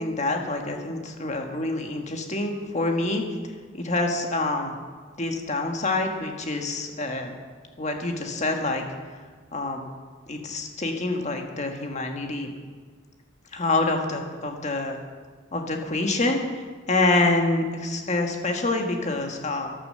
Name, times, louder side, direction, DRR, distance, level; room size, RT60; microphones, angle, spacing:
voice 1, 0.0-3.2 3.7-4.7 5.2-7.3 7.8-8.8 9.5-9.9 10.3-12.5 13.5-15.0 15.5-19.7, left 2 dB, 35° left, 3 dB, 1.7 m, -26 dB
12.5 x 11.0 x 7.7 m, 1.6 s
head